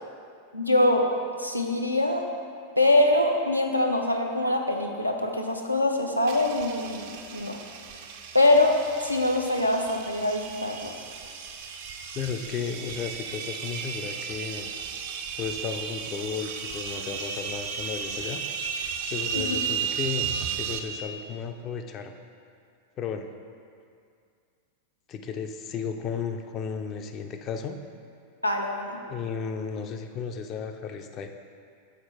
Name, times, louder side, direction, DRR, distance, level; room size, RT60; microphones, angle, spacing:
voice 1, 0.5-1.1 1.4-2.2 2.8-7.6 8.3-10.9 19.3-19.6 28.4-29.0, left 1 dB, 90° left, 2 dB, 0.6 m, -24 dB
sound 1, 6.3-20.8, right 7 dB, 50° right, 0.5 m, -34 dB
voice 2, 12.1-14.7 15.4-18.4 19.1-22.1 23.0-23.3 25.1-27.8 29.1-31.3, left 6 dB, 35° left, 6 dB, 0.4 m, -34 dB
6.6 x 4.3 x 4.5 m, 2.3 s
figure-of-eight pair, 90°, 0 cm